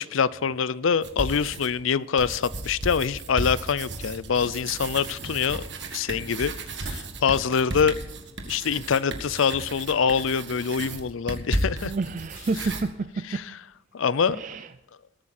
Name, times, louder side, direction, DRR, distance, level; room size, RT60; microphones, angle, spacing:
voice 1, 0.0-5.6 5.9-7.9 8.5-11.9 13.3-13.4 13.9-14.4, left 6 dB, 75° left, 0.5 m, -25 dB
sound 1, 1.0-1.8 2.2-12.8, right 2 dB, 60° right, 1.7 m, -34 dB
voice 2, 11.8-13.5 14.3-14.7, right 3 dB, 40° right, 0.4 m, -30 dB
20.5 x 8.8 x 4.3 m
head